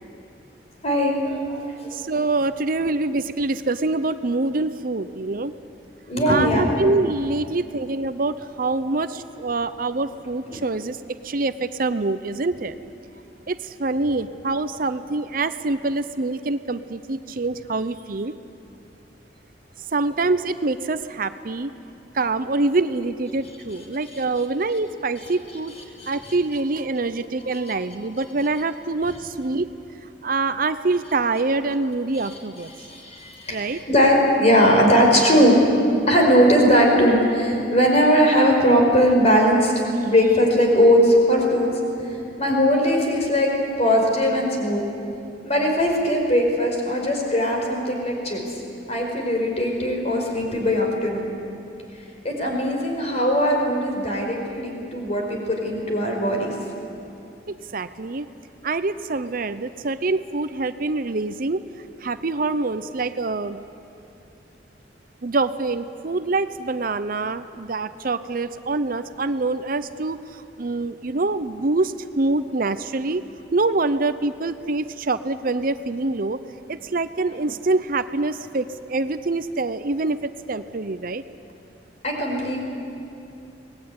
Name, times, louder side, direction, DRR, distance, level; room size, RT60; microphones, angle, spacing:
voice 1, 0.8-2.0 6.1-6.7 10.5-10.6 26.0-26.1 27.5-27.7 32.8-35.6 36.0-39.7 40.0-43.5 43.8-44.8 45.4-48.4 48.9-51.3 52.2-56.5 82.0-82.6, equal, 35° left, 1 dB, 5.2 m, -19 dB
voice 2, 1.9-5.5 6.3-11.0 11.2-12.7 13.5-18.3 19.9-21.7 22.1-25.7 26.1-29.7 30.2-32.7 33.5-33.8 39.0-39.1 57.5-58.3 58.6-61.6 62.0-63.6 65.2-73.2 73.5-76.4 76.7-81.2, right 3 dB, 50° right, 12 dB, 0.7 m, -25 dB
24.5 x 19.5 x 9.6 m, 2.8 s
head